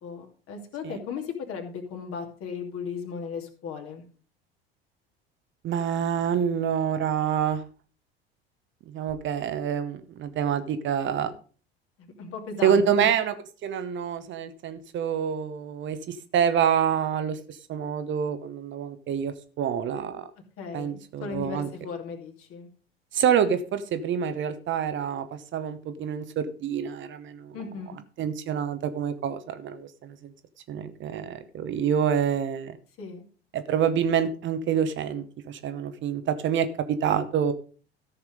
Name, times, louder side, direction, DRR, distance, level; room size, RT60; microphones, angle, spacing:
voice 1, 0.0-4.0 12.0-13.1 20.6-22.7 27.5-28.0 33.0-33.2, left 6 dB, 45° left, 4 dB, 2.5 m, -36 dB
voice 2, 5.6-7.6 8.9-11.3 12.6-13.3 13.6-20.3 20.7-21.7 23.1-25.3 25.5-27.5 28.2-30.3 30.7-32.8 33.5-37.5, right 8 dB, 40° right, 10 dB, 0.9 m, -27 dB
13.5 x 5.9 x 5.0 m, 0.40 s
figure-of-eight pair, 65°, 31 cm